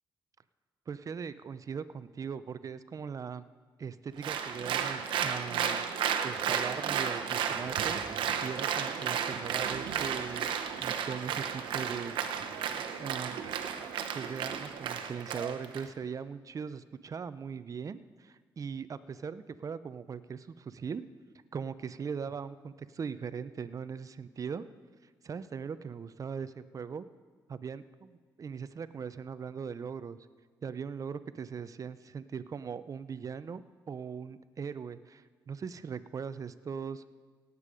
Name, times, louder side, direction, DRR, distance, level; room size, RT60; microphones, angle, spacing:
voice 1, 0.9-3.4 3.8-5.8 6.2-10.5 10.8-12.1 13.0-13.4 14.1-21.0 21.5-24.6 25.2-27.1 27.5-30.2 30.6-33.6 33.9-37.0, right 6 dB, 45° right, 14 dB, 0.5 m, -40 dB
Applause, 4.2-15.8, right 8 dB, 85° right, 0.8 m, -33 dB
17.5 x 8.3 x 5.0 m, 1.5 s
cardioid pair, 85°, 8 cm